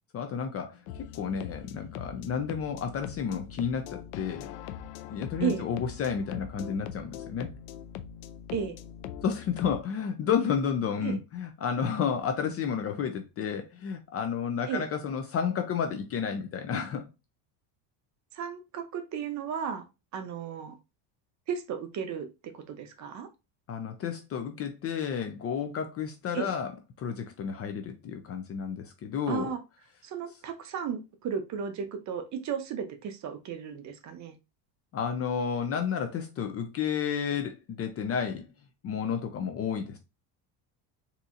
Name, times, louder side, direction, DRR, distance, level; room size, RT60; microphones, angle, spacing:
voice 1, 0.1-0.8 1.1-4.5 5.1-7.5 9.2-17.1 23.7-26.7 27.0-29.5 34.9-38.5 38.8-40.0, left 7 dB, 35° left, 0.4 m, -31 dB
sound 1, 0.9-9.8, left 9 dB, 80° left, 0.6 m, -42 dB
voice 2, 18.3-19.8 20.1-20.7 21.5-22.3 22.5-23.3 26.3-26.5 29.3-29.6 30.0-34.3, right 7 dB, 40° right, 0.6 m, -34 dB
3.9 x 2.8 x 2.4 m
cardioid pair, 135°, 47 cm